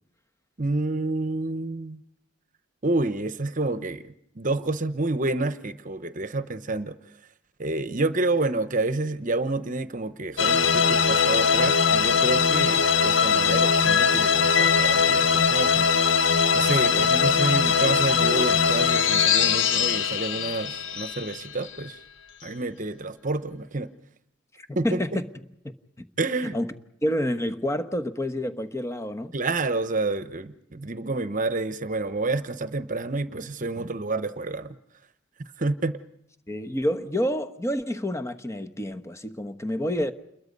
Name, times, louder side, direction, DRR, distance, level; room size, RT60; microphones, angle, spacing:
voice 1, 0.6-2.0 2.8-4.1 4.3-7.0 7.6-15.9 16.5-22.0 22.4-23.9 24.8-25.2 26.2-26.5 29.3-34.7 35.6-36.0, right 2 dB, 40° right, 1.0 m, -28 dB
sound 1, 10.4-21.8, left 6 dB, 65° left, 1.1 m, -21 dB
voice 2, 24.6-25.3 26.0-26.1 26.5-26.7 27.0-29.3 36.5-40.1, equal, 15° left, 1.2 m, -28 dB
28.5 x 22.0 x 5.4 m
head